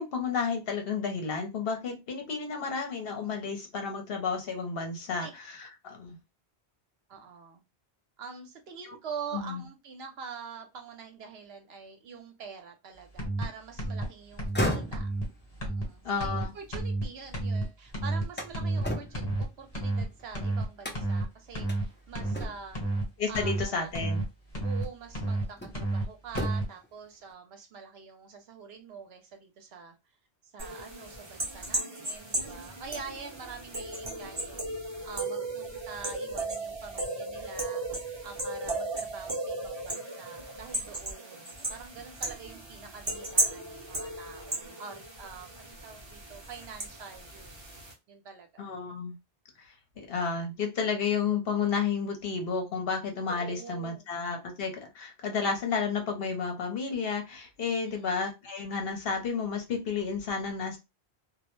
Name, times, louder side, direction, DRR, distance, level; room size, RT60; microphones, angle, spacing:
voice 1, 0.0-6.2 9.3-9.6 16.0-16.5 23.2-24.2 48.6-49.1 50.0-60.8, left 5 dB, 65° left, 4 dB, 0.9 m, -31 dB
voice 2, 7.1-7.6 8.2-15.1 15.6-22.8 23.3-24.2 24.6-30.0 30.4-47.6 48.1-48.6 53.3-54.1 57.8-58.1, right 6 dB, 70° right, 5 dB, 0.8 m, -45 dB
sound 1, 13.2-13.4 13.8-14.0 14.4-14.6 14.9-15.3 15.6-15.8 16.2-16.4 16.7-17.1 17.3-17.6 17.9-18.2 18.5-18.8 19.1-19.4 19.7-20.0 20.3-20.6 20.9-21.2 21.5-21.8 22.1-22.5 22.7-23.0 23.3-23.6 23.9-24.2 24.5-24.8 25.1-25.4 25.7-26.0 26.3-26.6, right 2 dB, 40° left, 1.1 m, -30 dB
sound 2, 14.3-17.5 17.9-20.2 20.8-21.3 21.7-21.8 22.3-22.9 24.1-24.2 24.8-25.9 26.3-26.9, equal, 20° left, 0.3 m, -36 dB
sound 3, 30.6-47.9, right 2 dB, 30° right, 0.6 m, -35 dB
2.2 x 2.1 x 3.0 m, 0.23 s
omnidirectional pair, 1.1 m